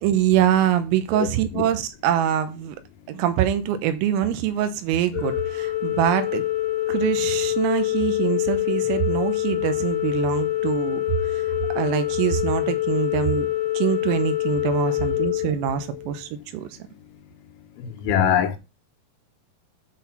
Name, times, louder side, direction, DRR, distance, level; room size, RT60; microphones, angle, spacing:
voice 1, 0.0-2.8 3.1-6.4 6.9-11.0 11.7-13.5 13.8-16.8, right 11 dB, 85° right, 3.6 m, -24 dB
Organ, 5.1-16.2, left 15 dB, 35° left, 2.5 m, -25 dB
voice 2, 17.8-18.6, left 9 dB, 80° left, 3.7 m, -23 dB
9.2 x 4.1 x 5.6 m
omnidirectional pair, 6.0 m